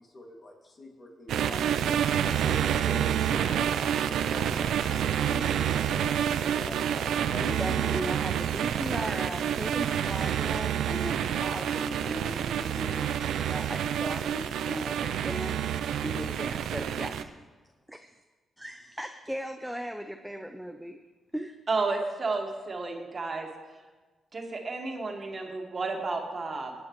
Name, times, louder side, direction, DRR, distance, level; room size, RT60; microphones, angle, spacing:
voice 1, 0.0-2.0 2.4-8.1, left 1 dB, 45° left, 0 dB, 2.4 m, -42 dB
sound 1, 1.3-17.2, right 9 dB, 85° right, 0.5 m, -28 dB
voice 2, 7.6-17.3 17.9-18.1 18.6-21.0 21.3-21.6, equal, 5° right, 5 dB, 0.7 m, -38 dB
voice 3, 21.7-23.5 24.3-26.7, right 3 dB, 40° right, 1 dB, 1.9 m, -32 dB
18.5 x 8.7 x 3.2 m, 1.3 s
cardioid pair, 70°, 0 cm